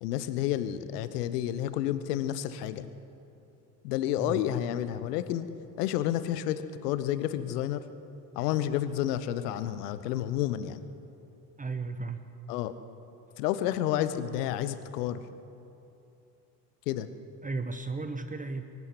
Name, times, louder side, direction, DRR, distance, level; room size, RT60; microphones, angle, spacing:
voice 1, 0.0-2.9 3.8-5.5 5.8-7.8 8.3-10.8 12.5-12.8 13.4-15.2 16.9-17.1, left 12 dB, 70° left, 13 dB, 1.2 m, -30 dB
voice 2, 11.6-12.3 17.4-18.6, right 3 dB, 15° right, 8 dB, 1.3 m, -34 dB
23.0 x 13.5 x 9.7 m, 2.8 s
figure-of-eight pair, 60°, 49 cm